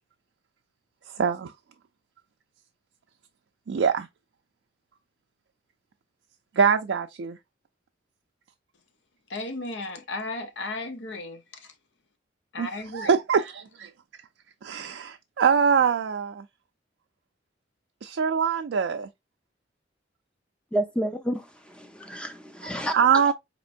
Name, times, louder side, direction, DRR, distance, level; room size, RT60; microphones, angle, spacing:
voice 1, 1.1-1.5 3.7-4.1 6.6-7.4 12.6-13.9 14.6-16.4 18.0-19.1 22.6-23.3, right 6 dB, 90° right, 0.4 m, -24 dB
voice 2, 9.3-11.7 12.5-13.1, left 2 dB, 75° left, 0.7 m, -35 dB
voice 3, 20.7-23.0, right 1 dB, 5° left, 0.6 m, -30 dB
4.3 x 2.9 x 2.5 m
head